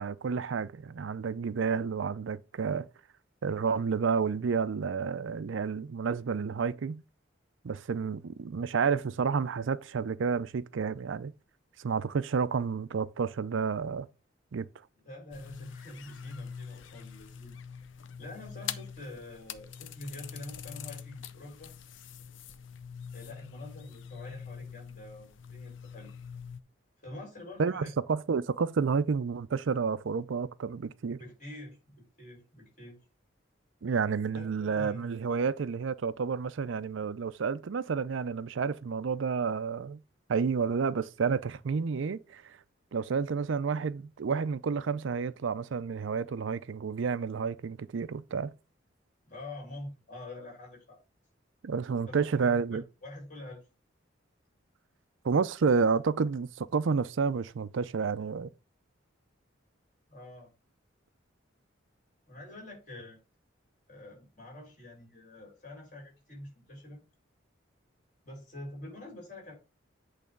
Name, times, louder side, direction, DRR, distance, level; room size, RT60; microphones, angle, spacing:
voice 1, 0.0-2.9 3.4-7.0 7.6-11.3 11.8-14.1 14.5-14.7 27.6-31.2 33.8-40.0 40.3-42.6 42.9-48.5 51.6-52.8 55.2-58.5, right 5 dB, 75° right, 0.4 m, -30 dB
voice 2, 15.0-17.6 18.2-21.7 23.1-26.1 27.0-27.9 31.2-33.0 34.3-35.1 49.2-51.0 52.1-53.6 60.1-60.5 62.3-63.2 63.9-67.0 68.2-69.5, left 1 dB, 40° left, 4.5 m, -46 dB
sound 1, 15.3-26.6, left 7 dB, 75° left, 0.6 m, -44 dB
8.5 x 3.4 x 5.2 m
head